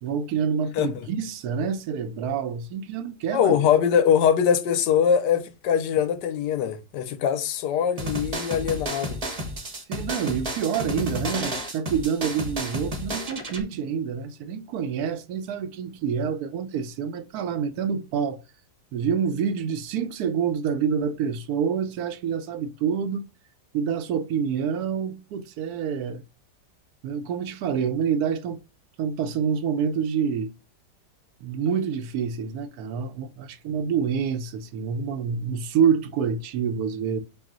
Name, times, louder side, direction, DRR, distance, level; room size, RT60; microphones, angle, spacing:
voice 1, 0.0-3.5 9.9-18.4 18.9-23.3 23.7-26.2 27.0-28.6 29.0-30.5 31.4-37.2, right 7 dB, 70° right, 1.0 m, -27 dB
voice 2, 3.3-9.2 13.2-13.3, left 8 dB, 80° left, 1.3 m, -22 dB
sound 1, 8.0-13.6, equal, 30° right, 0.8 m, -32 dB
5.9 x 2.4 x 3.8 m
omnidirectional pair, 1.9 m